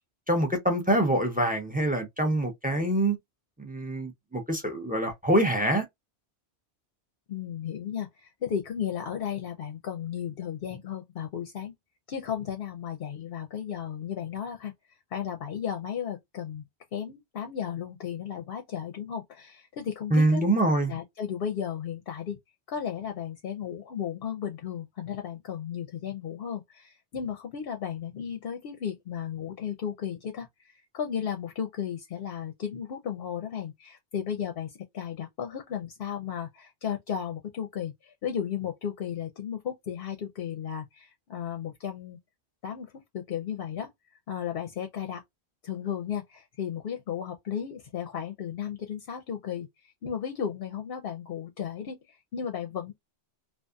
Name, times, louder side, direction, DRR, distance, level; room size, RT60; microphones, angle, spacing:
voice 1, 0.3-3.2 3.6-5.8 20.1-20.9, right 1 dB, 10° right, 0.6 m, -25 dB
voice 2, 7.3-11.7 12.1-14.7 15.1-16.6 16.9-20.4 20.9-22.4 22.7-42.2 42.6-43.9 44.3-45.2 45.6-52.9, left 8 dB, 60° left, 0.7 m, -34 dB
2.6 x 2.4 x 2.2 m
omnidirectional pair, 1.2 m